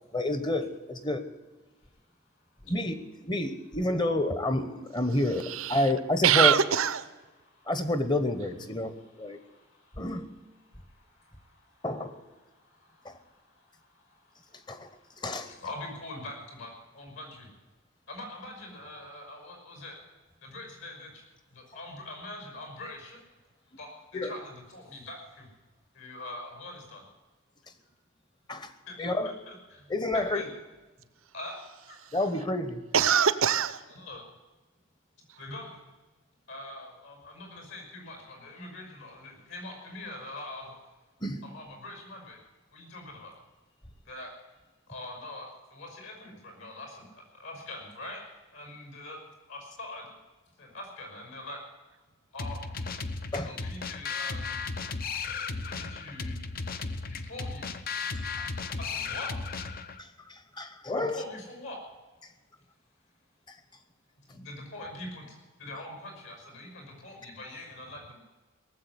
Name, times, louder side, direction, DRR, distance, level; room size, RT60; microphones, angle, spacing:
voice 1, 0.1-1.3 2.7-2.9 3.2-5.4 5.7-6.5 7.7-8.9 9.2-9.4 10.0-10.3 11.8-12.2 13.0-13.2 14.7-14.9 15.2-15.5 24.1-24.3 28.5-28.7 29.0-29.3 29.9-30.4 32.1-32.8 41.2-41.4 53.3-53.5 58.4-58.5 60.0-61.2 63.5-63.6, left 1 dB, 20° left, 11 dB, 1.0 m, -29 dB
voice 2, 5.0-5.9 6.2-7.1 8.6-8.7 31.5-32.4 32.9-33.8 35.3-35.4, right 8 dB, 80° right, 15 dB, 0.8 m, -25 dB
voice 3, 7.4-7.7 8.8-10.1 10.7-11.9 12.4-17.5 18.1-20.0 20.4-21.2 21.5-23.2 23.8-25.5 25.9-27.0 27.8-27.9 28.9-30.5 31.3-32.0 34.0-34.3 35.4-35.8 36.5-40.8 41.4-42.4 42.7-43.4 44.0-44.3 44.9-49.2 49.5-50.1 50.6-51.6 52.3-52.6 53.4-54.6 55.5-56.4 57.1-57.7 58.8-59.3 61.0-61.8 64.3-65.2 65.6-68.2, left 1 dB, 70° left, 2 dB, 5.9 m, -44 dB
sound 1, 52.4-60.0, left 4 dB, 45° left, 0.7 m, -35 dB
18.5 x 7.8 x 9.6 m, 1.2 s
head